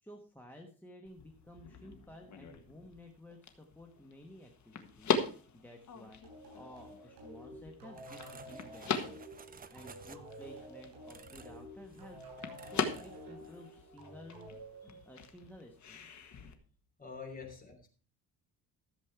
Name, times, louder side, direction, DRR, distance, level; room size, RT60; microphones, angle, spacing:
voice 1, 0.0-9.4 9.7-12.3 12.6-14.5 14.8-16.1, left 1 dB, 5° left, 3 dB, 1.3 m, -54 dB
sound 1, 1.1-16.5, left 5 dB, 50° left, 1.6 m, -41 dB
sound 2, 6.2-15.5, equal, 65° right, 7.8 m, -50 dB
sound 3, 7.9-10.6 11.1-11.6 11.9-12.2 12.5-13.2 13.4-13.7, right 6 dB, 25° right, 0.7 m, -55 dB
voice 2, 17.0-17.9, left 5 dB, 25° left, 3 dB, 3.1 m, -46 dB
14.5 x 7.4 x 4.6 m, 0.40 s
cardioid pair, 145°, 37 cm